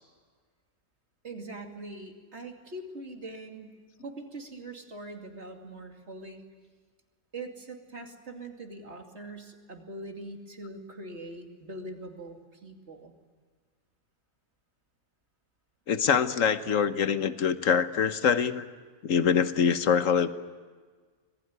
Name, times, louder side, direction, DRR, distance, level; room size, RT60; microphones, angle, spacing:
voice 1, 1.2-3.8 4.0-6.4 7.3-13.1, right 2 dB, 45° right, 3 dB, 2.9 m, -42 dB
voice 2, 15.9-18.6 19.0-20.3, left 7 dB, 60° left, 11 dB, 1.4 m, -24 dB
26.0 x 20.5 x 9.5 m, 1.5 s
omnidirectional pair, 1.6 m